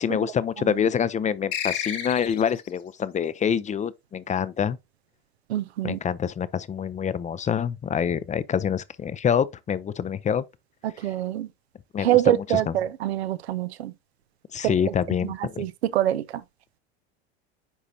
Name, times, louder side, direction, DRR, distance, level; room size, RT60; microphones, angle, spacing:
voice 1, 0.0-4.8 5.8-10.4 11.9-12.2 14.5-15.7, left 8 dB, 25° left, 0.5 m, -26 dB
sound 1, 1.5-2.7, left 9 dB, 80° left, 1.7 m, -30 dB
voice 2, 5.5-6.0 10.8-11.5 12.0-13.9 14.6-14.9 15.2-16.4, right 13 dB, 90° right, 0.6 m, -25 dB
10.0 x 4.0 x 2.7 m
hypercardioid pair, 90°, 31 cm